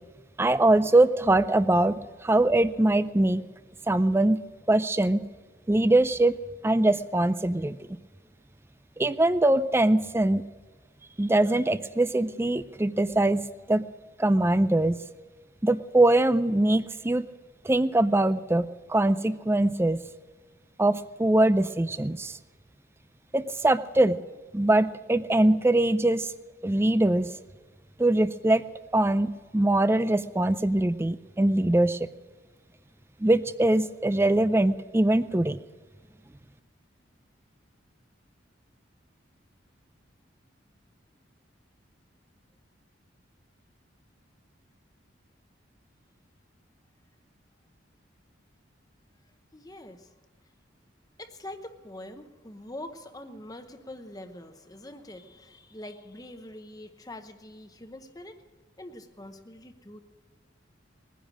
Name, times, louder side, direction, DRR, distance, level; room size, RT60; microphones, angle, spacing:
voice 1, 0.4-3.4 3.9-4.4 4.7-5.2 5.7-6.4 6.6-7.8 9.0-10.4 11.2-13.9 14.2-15.0 15.6-17.3 17.6-20.0 20.8-22.4 23.3-24.2 24.5-26.3 26.6-27.3 28.0-28.6 28.9-32.1 33.2-35.6, right 1 dB, 10° right, 13 dB, 0.4 m, -22 dB
voice 2, 49.5-50.1 51.2-58.4 58.8-60.0, left 1 dB, 20° left, 7 dB, 0.9 m, -44 dB
21.0 x 10.0 x 6.3 m, 1.4 s
head